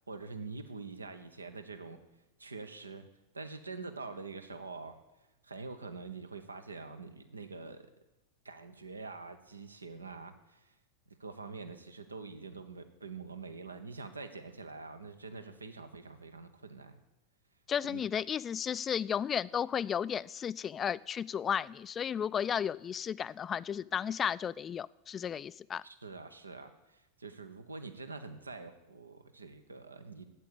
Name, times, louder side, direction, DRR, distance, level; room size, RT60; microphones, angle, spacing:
voice 1, 0.1-2.0 2.4-3.1 3.3-5.0 5.4-7.9 8.4-10.7 11.2-17.0 17.9-18.0 25.8-30.3, right 4 dB, 85° right, 9 dB, 0.9 m, -45 dB
voice 2, 17.7-25.8, left 8 dB, 25° left, 19 dB, 0.3 m, -34 dB
8.7 x 8.4 x 8.8 m, 0.97 s
figure-of-eight pair, 90°, 0 cm